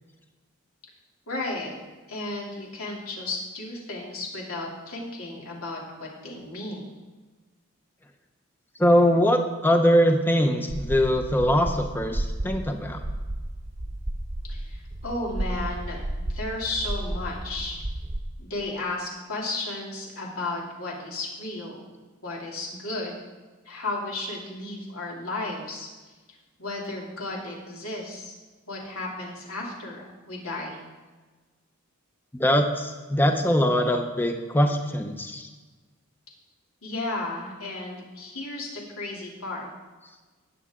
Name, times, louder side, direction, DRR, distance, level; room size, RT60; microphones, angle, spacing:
voice 1, 1.3-1.7 2.1-6.8 14.5-16.0 16.3-17.8 18.4-21.8 22.2-23.2 23.6-25.9 26.6-28.3 28.7-30.8 36.8-39.7, left 2 dB, 90° left, -3 dB, 2.9 m, -34 dB
voice 2, 8.8-13.0 32.3-35.5, equal, 10° left, 5 dB, 0.6 m, -22 dB
sound 1, 10.7-18.2, right 1 dB, 30° right, 0.8 m, -33 dB
18.5 x 7.3 x 3.7 m, 1.3 s
head